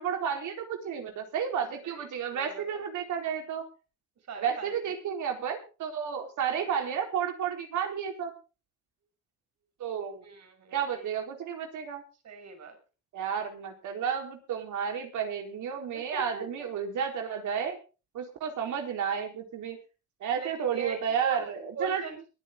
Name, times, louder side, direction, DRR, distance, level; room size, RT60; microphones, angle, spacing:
voice 1, 0.0-3.6 4.4-8.3 9.8-10.2 10.7-12.0 13.1-17.8 18.1-19.8 20.2-22.1, right 7 dB, 75° right, 4 dB, 4.1 m, -32 dB
voice 2, 1.9-2.6 4.3-4.9 10.2-11.0 12.2-12.8 15.9-16.4 20.4-21.0 21.2-21.4 21.8-22.3, right 6 dB, 60° right, 4 dB, 6.2 m, -40 dB
22.0 x 9.8 x 3.8 m, 0.33 s
cardioid pair, 90°, 30 cm